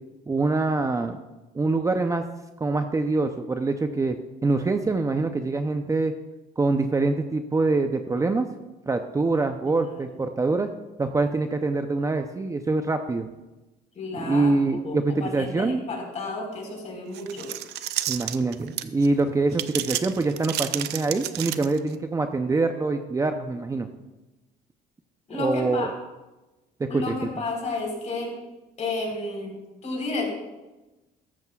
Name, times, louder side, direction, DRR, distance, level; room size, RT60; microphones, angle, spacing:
voice 1, 0.3-1.2 1.5-2.3 2.6-6.1 6.6-8.5 8.9-10.7 11.0-13.3 14.1-15.8 18.1-23.9 25.4-25.9 26.8-27.2, right 3 dB, 20° right, 6 dB, 0.6 m, -25 dB
voice 2, 9.6-10.1 13.9-17.5 25.3-25.9 26.9-28.3 28.8-29.5 29.8-30.3, left 2 dB, 45° left, 0 dB, 4.3 m, -32 dB
sound 1, 17.1-19.1 19.5-21.9, right 13 dB, 75° right, 0.6 m, -30 dB
13.5 x 13.0 x 2.4 m, 1.1 s
cardioid pair, 110°, 17 cm